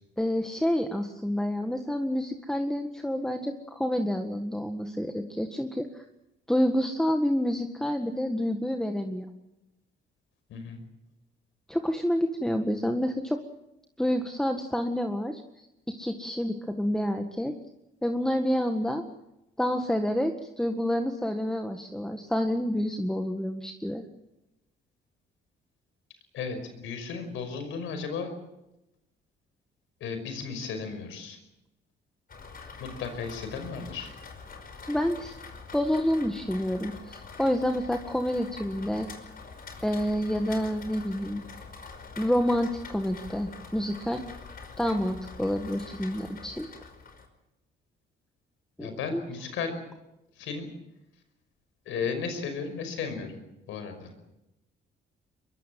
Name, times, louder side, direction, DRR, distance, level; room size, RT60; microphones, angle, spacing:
voice 1, 0.2-6.0 6.5-9.3 11.7-13.4 14.0-17.5 18.0-19.0 19.6-24.1 34.9-35.4 35.7-39.1 39.8-41.4 42.2-44.2 44.8-46.7 48.8-49.2, equal, 5° left, 5 dB, 1.7 m, -28 dB
voice 2, 26.3-28.3 30.0-31.4 32.8-34.1 48.8-49.7 50.4-50.7 51.9-53.3 53.7-54.1, left 5 dB, 85° left, 8 dB, 5.5 m, -34 dB
Rain, 32.3-47.3, left 4 dB, 50° left, 5.1 m, -45 dB
22.5 x 22.5 x 7.6 m, 0.92 s
cardioid pair, 90°, 20 cm